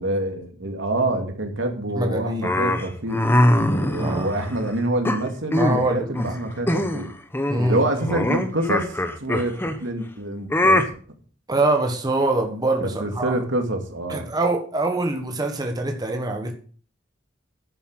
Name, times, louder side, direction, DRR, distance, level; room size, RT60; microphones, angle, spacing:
voice 1, 0.0-3.2 3.7-7.1 7.7-8.9 9.2-10.8 12.8-14.2, right 1 dB, 80° right, 4 dB, 2.5 m, -26 dB
voice 2, 1.9-2.5 4.0-4.3 5.6-6.3 7.5-7.8 11.5-13.4 14.1-16.5, right 2 dB, 20° right, 3 dB, 1.4 m, -24 dB
sound 1, 2.4-4.6 5.0-5.9 6.1-6.4 6.7-7.1 7.3-9.8 10.5-10.8, left 1 dB, 10° left, 1.1 m, -22 dB
10.5 x 7.9 x 6.5 m, 0.43 s
head